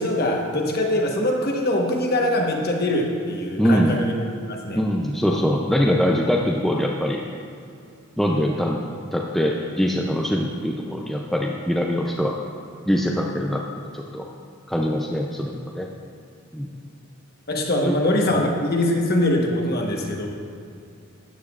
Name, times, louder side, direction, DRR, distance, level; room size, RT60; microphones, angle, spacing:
voice 1, 0.0-4.1 4.5-4.8 17.5-20.3, left 1 dB, 45° left, 0 dB, 1.1 m, -23 dB
voice 2, 3.6-4.0 4.8-7.2 8.2-8.8 9.1-12.4 12.9-13.6 13.9-14.2 14.7-15.9 16.5-16.7 17.8-17.9 18.3-18.4, equal, ahead, -1 dB, 0.4 m, -23 dB
13.0 x 9.4 x 2.4 m, 2.4 s
head